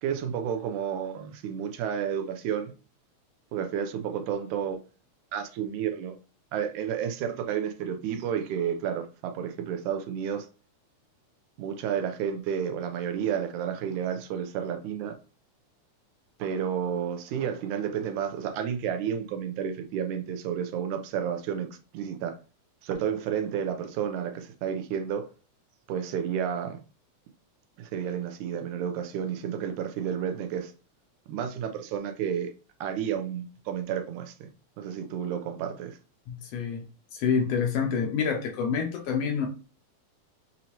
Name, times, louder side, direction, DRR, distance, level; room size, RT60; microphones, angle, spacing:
voice 1, 0.0-2.7 3.5-4.8 5.3-6.2 6.5-10.5 11.6-15.2 16.4-21.7 21.9-22.4 22.8-25.3 25.9-26.8 27.8-30.7 31.3-32.5 32.8-34.5 34.8-36.0, right 8 dB, 80° right, 2.0 m, -31 dB
voice 2, 36.3-36.8 37.1-39.5, left 6 dB, 75° left, 1.5 m, -27 dB
6.3 x 2.7 x 2.8 m
omnidirectional pair, 3.5 m